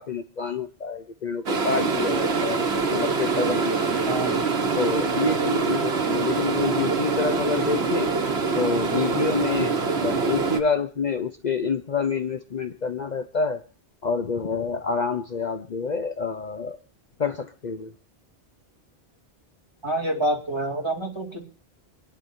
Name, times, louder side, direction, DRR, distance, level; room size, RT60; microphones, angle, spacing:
voice 1, 0.0-4.2 4.8-8.1 8.5-13.6 14.0-16.8 17.2-17.9, left 5 dB, 45° left, 8 dB, 0.8 m, -28 dB
sound 1, 1.5-10.6, right 4 dB, 75° right, 1.5 m, -24 dB
voice 2, 4.1-4.5 19.8-21.5, right 1 dB, 25° right, 0 dB, 2.4 m, -27 dB
26.5 x 10.5 x 2.7 m, 0.41 s
omnidirectional pair, 1.1 m